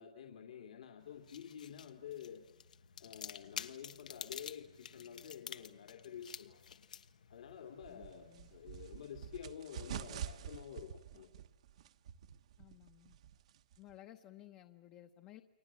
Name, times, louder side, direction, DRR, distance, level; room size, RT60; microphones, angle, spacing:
voice 1, 0.0-2.4 3.0-6.6 7.3-11.3, left 8 dB, 70° left, 3 dB, 2.8 m, -50 dB
sound 1, 1.0-9.5, left 7 dB, 90° left, 1.3 m, -51 dB
sound 2, 7.8-14.0, right 9 dB, 55° right, 1.2 m, -48 dB
voice 2, 7.9-8.5 12.6-13.2 13.8-15.4, left 14 dB, 25° left, 7 dB, 1.0 m, -57 dB
30.0 x 23.0 x 7.6 m, 0.99 s
hypercardioid pair, 165°, 4 cm